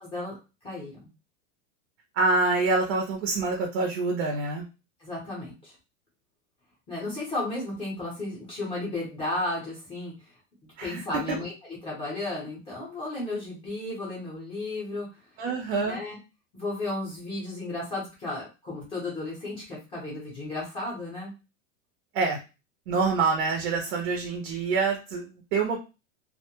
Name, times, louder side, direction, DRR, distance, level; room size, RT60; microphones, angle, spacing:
voice 1, 0.0-0.3 0.6-0.9 5.0-5.7 6.9-10.1 10.8-11.5 11.8-15.1 15.9-16.2 16.5-21.3, left 2 dB, 15° left, -5 dB, 0.6 m, -33 dB
voice 2, 2.1-4.7 10.8-11.4 15.4-16.0 22.1-22.4 22.9-25.8, right 3 dB, 55° right, 1 dB, 0.6 m, -26 dB
2.1 x 2.0 x 2.9 m, 0.29 s
supercardioid pair, 170°, 38 cm